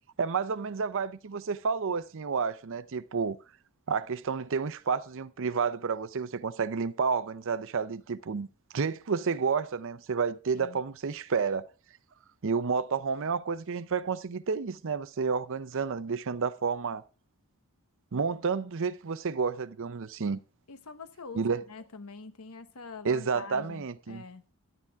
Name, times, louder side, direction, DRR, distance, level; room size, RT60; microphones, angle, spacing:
voice 1, 0.2-3.4 3.9-8.5 8.7-11.7 12.4-17.0 18.1-20.4 21.3-21.6 23.0-24.2, right 5 dB, 60° right, 0.6 m, -30 dB
voice 2, 20.7-24.4, left 4 dB, 80° left, 1.1 m, -45 dB
12.0 x 9.9 x 3.5 m
head